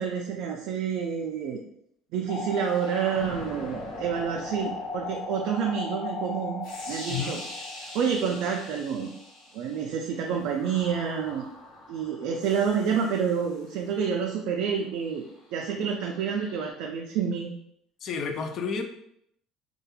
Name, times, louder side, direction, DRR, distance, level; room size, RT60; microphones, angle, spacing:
voice 1, 0.0-1.6 2.1-7.4 7.9-9.1 9.5-11.4 11.9-15.3 15.5-17.5, right 7 dB, 75° right, 0 dB, 0.3 m, -28 dB
sound 1, 2.3-9.8 10.6-13.6 16.3-16.7, left 3 dB, 80° left, 0.9 m, -38 dB
voice 2, 7.1-7.4 18.0-18.8, left 5 dB, 45° left, 6 dB, 0.4 m, -31 dB
2.3 x 2.2 x 2.9 m, 0.73 s
cardioid pair, 125°, 0 cm